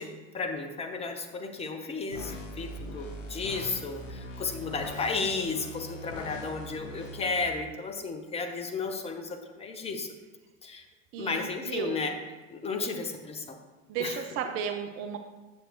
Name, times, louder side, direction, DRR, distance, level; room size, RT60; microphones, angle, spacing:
voice 1, 0.0-10.1 10.6-10.8 11.2-12.2 12.5-13.6 14.0-14.2, left 4 dB, 15° left, 5 dB, 0.8 m, -33 dB
sound 1, 2.1-7.4, left 1 dB, 75° left, 0.9 m, -41 dB
voice 2, 11.1-12.0 13.9-15.2, right 7 dB, 35° right, 6 dB, 0.6 m, -34 dB
8.8 x 6.7 x 3.0 m, 1.2 s
figure-of-eight pair, 80°, 38 cm